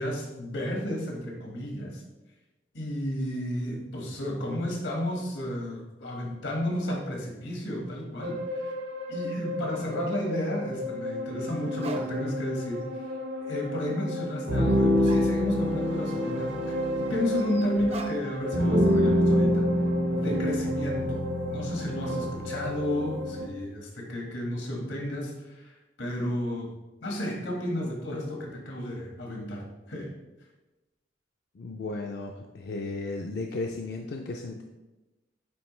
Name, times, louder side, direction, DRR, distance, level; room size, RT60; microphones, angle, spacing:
voice 1, 0.0-2.0 2.7-8.7 9.1-13.1 13.4-19.7 20.1-26.7 27.0-30.1, equal, 90° left, 0 dB, 1.6 m, -32 dB
sound 1, 8.2-23.5, equal, 75° right, 0.9 m, -28 dB
sound 2, 11.4-11.5 11.8-12.5 12.8-12.9 14.7-14.8 15.0-15.8 16.1-16.2 17.3-18.5 18.8-19.3, right 3 dB, 35° right, 0.5 m, -44 dB
voice 2, 31.5-34.6, left 3 dB, 60° left, 2 dB, 0.4 m, -35 dB
8.9 x 3.6 x 3.2 m, 1.0 s
head